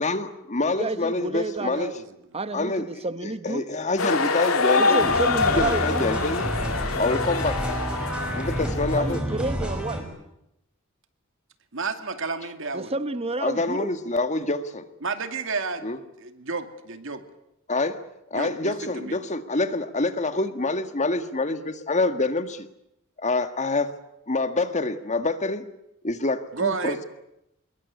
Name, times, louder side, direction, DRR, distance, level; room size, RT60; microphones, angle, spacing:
voice 1, 0.0-1.9 2.5-2.9 3.2-5.1 5.5-6.5 7.0-7.6 8.3-9.2 13.4-14.8 15.8-16.0 17.7-18.0 18.3-22.7 23.2-23.9 24.3-25.7 26.0-27.0, left 2 dB, 35° left, 9 dB, 1.8 m, -26 dB
voice 2, 0.6-1.9 2.3-3.7 4.8-6.1 8.9-10.0 12.7-13.9, right 2 dB, 30° right, 12 dB, 1.1 m, -30 dB
sound 1, 4.0-9.2, left 4 dB, 80° left, 3.0 m, -25 dB
sound 2, 5.0-10.0, equal, 5° right, 6.1 m, -29 dB
voice 3, 11.7-12.9 15.0-15.9 16.2-17.2 18.3-19.2 26.5-27.0, right 4 dB, 65° right, 8 dB, 2.4 m, -31 dB
25.5 x 22.5 x 8.5 m, 0.85 s
head